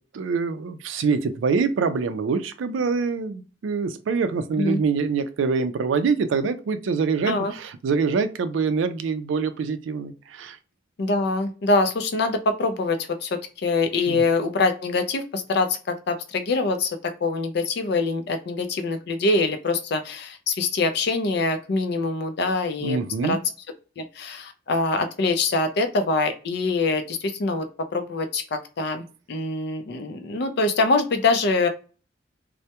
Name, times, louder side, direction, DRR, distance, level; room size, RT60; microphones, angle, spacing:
voice 1, 0.1-10.6 14.1-14.2 22.8-23.4, right 5 dB, 80° right, 11 dB, 0.3 m, -25 dB
voice 2, 11.0-23.4 24.0-31.7, left 3 dB, 60° left, 8 dB, 0.4 m, -24 dB
2.2 x 2.0 x 2.8 m, 0.36 s
head